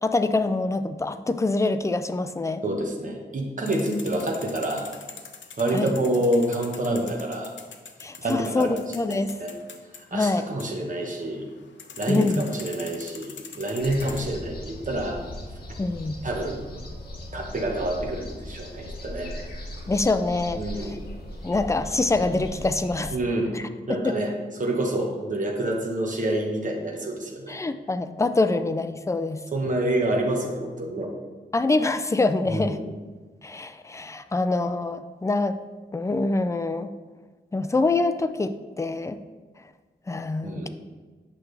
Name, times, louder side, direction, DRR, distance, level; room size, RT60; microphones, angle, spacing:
voice 1, 0.0-2.6 5.7-5.9 8.0-9.4 10.1-10.5 12.1-12.5 15.8-16.2 19.9-20.6 21.4-23.1 23.5-23.6 23.9-24.1 27.5-29.4 31.5-32.8 33.4-35.6 35.9-36.9 37.5-39.2 40.1-40.7, left 3 dB, 15° left, 10 dB, 0.3 m, -25 dB
voice 2, 2.6-4.9 5.6-7.5 8.2-8.7 9.1-9.5 10.1-11.4 12.0-15.2 16.2-16.7 17.3-19.3 20.5-21.0 23.1-23.5 23.9-24.3 24.6-27.6 29.5-31.1 32.5-32.9 40.4-40.7, right 1 dB, 45° right, 0 dB, 1.2 m, -27 dB
sound 1, 3.7-14.2, left 5 dB, 90° left, 0.7 m, -44 dB
sound 2, 13.8-23.2, left 1 dB, 55° left, 1.8 m, -38 dB
8.6 x 5.9 x 3.3 m, 1.4 s
wide cardioid pair, 130°, 19 cm